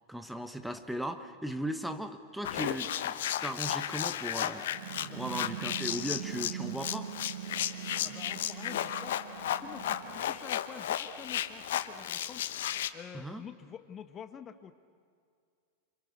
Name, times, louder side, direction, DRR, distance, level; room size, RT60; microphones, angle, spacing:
voice 1, 0.1-4.6 5.1-7.1 13.1-13.4, equal, ahead, 9 dB, 1.2 m, -37 dB
sound 1, 2.4-12.9, left 11 dB, 60° left, 1.0 m, -34 dB
sound 2, 4.7-10.4, right 12 dB, 50° right, 1.1 m, -42 dB
voice 2, 7.9-9.2 9.5-14.7, left 8 dB, 25° left, 10 dB, 1.1 m, -48 dB
29.0 x 27.0 x 6.7 m, 2.2 s
figure-of-eight pair, 90°, 0 cm